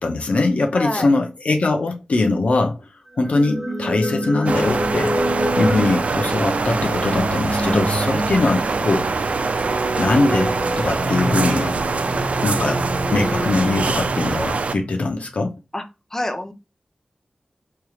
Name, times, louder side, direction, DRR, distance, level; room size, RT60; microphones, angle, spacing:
voice 1, 0.0-2.8 3.2-5.2 5.6-9.3 10.0-11.7 12.4-12.8 13.1-15.5, left 3 dB, 75° left, 0.7 m, -21 dB
voice 2, 0.7-1.1 15.7-15.8 16.1-16.5, left 1 dB, 20° left, 0.8 m, -26 dB
sound 1, 3.2-15.1, right 1 dB, 15° right, 1.2 m, -27 dB
sound 2, 4.5-14.7, right 4 dB, 70° right, 0.4 m, -24 dB
4.6 x 3.2 x 2.3 m
wide cardioid pair, 65°, 2 cm